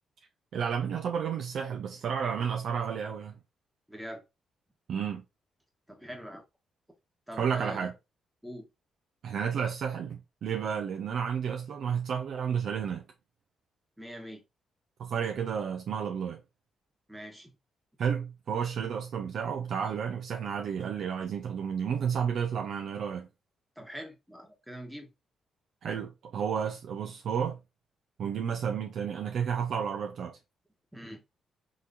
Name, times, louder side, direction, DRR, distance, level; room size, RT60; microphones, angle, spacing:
voice 1, 0.5-3.3 4.9-5.2 7.3-7.9 9.2-13.1 15.0-16.4 18.0-23.3 25.8-27.6 28.2-30.4, right 7 dB, 70° right, 0.4 m, -31 dB
voice 2, 3.9-4.2 5.9-6.4 7.3-7.9 8.4-8.7 14.0-14.4 17.1-17.5 23.8-25.1 30.9-31.2, equal, 5° right, 1.1 m, -43 dB
3.8 x 2.9 x 2.5 m
supercardioid pair, 65°, 0 cm